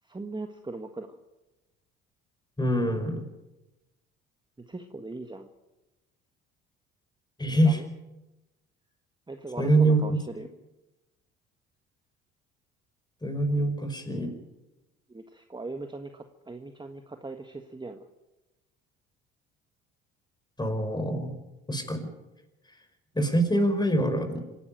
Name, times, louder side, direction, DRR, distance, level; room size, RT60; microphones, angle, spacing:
voice 1, 0.0-1.2 4.7-5.5 7.6-7.9 9.3-10.5 13.6-13.7 15.1-18.1, right 3 dB, 15° right, 6 dB, 1.6 m, -39 dB
voice 2, 2.6-3.3 7.4-7.8 9.6-10.0 13.2-14.4 20.6-21.3 21.7-22.0 23.1-24.4, right 1 dB, 15° left, 6 dB, 5.2 m, -24 dB
26.0 x 12.0 x 8.9 m, 1.0 s
hypercardioid pair, 60°, 32 cm